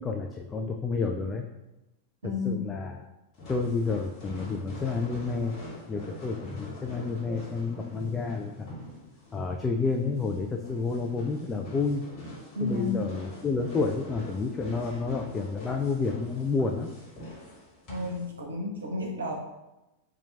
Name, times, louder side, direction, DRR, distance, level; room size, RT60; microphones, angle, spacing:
voice 1, 0.0-1.5 2.2-3.1 3.5-5.6 5.9-8.7 9.3-12.1 12.6-16.9, left 4 dB, 15° left, 2 dB, 0.3 m, -30 dB
voice 2, 2.2-2.6 12.6-13.1 17.9-19.3, left 3 dB, 70° right, 0 dB, 0.8 m, -31 dB
sound 1, 3.3-18.2, left 1 dB, 35° left, 1.4 m, -44 dB
4.4 x 2.4 x 3.2 m, 0.96 s
figure-of-eight pair, 90°, 0 cm